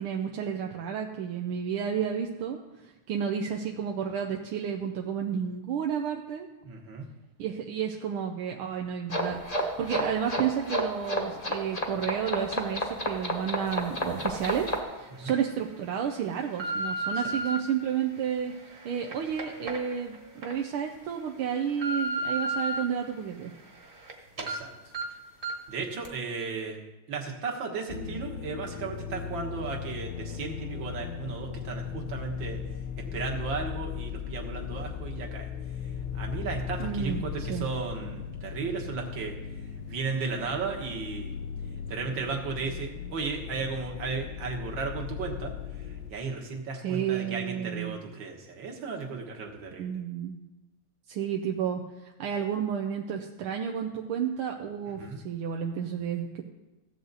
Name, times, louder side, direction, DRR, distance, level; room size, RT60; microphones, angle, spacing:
voice 1, 0.0-6.5 7.4-18.5 18.8-23.5 36.8-37.7 46.8-48.0 49.8-50.4 51.1-56.4, right 8 dB, 85° right, 2 dB, 1.6 m, -31 dB
voice 2, 6.6-7.1 15.2-15.3 17.2-17.3 24.4-24.7 25.7-26.8 27.1-32.6 33.0-35.5 36.1-39.4 39.9-41.3 41.9-45.5 46.1-50.0 55.0-55.2, right 4 dB, 65° right, 0 dB, 2.1 m, -35 dB
sound 1, 9.1-14.8, equal, 20° left, 1.1 m, -30 dB
sound 2, 14.3-14.4 15.0-15.3 15.9-17.6 18.2-20.5 21.0-21.1 21.5-22.8 23.2-24.1 24.4-24.6 24.9-25.0 25.4-25.7 26.0-26.1, right 1 dB, 30° right, 1.4 m, -34 dB
sound 3, 27.9-46.1, left 8 dB, 70° left, 1.3 m, -38 dB
16.0 x 7.7 x 4.0 m, 1.1 s
omnidirectional pair, 2.3 m